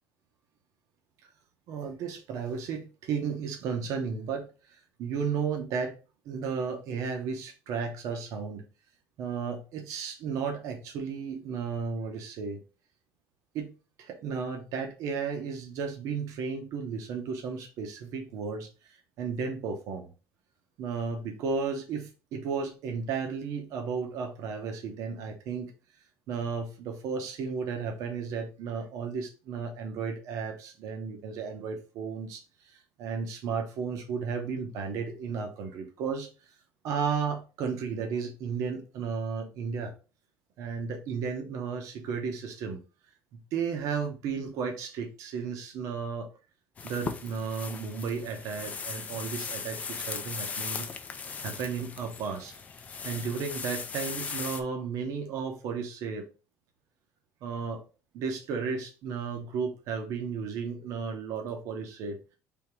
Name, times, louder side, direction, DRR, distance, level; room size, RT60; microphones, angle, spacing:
voice 1, 1.7-4.5 5.0-5.9 6.2-8.6 9.2-12.6 13.5-13.7 14.0-20.1 20.8-25.7 26.3-36.3 36.8-39.9 40.6-42.8 43.5-46.3 46.8-50.9 51.4-52.5 53.0-56.2 57.4-57.8 58.1-62.2, right 5 dB, 65° right, 3 dB, 1.0 m, -34 dB
sound 1, 46.8-54.6, left 5 dB, 25° left, 0.4 m, -38 dB
3.6 x 2.9 x 4.5 m, 0.33 s
cardioid pair, 160°, 6 cm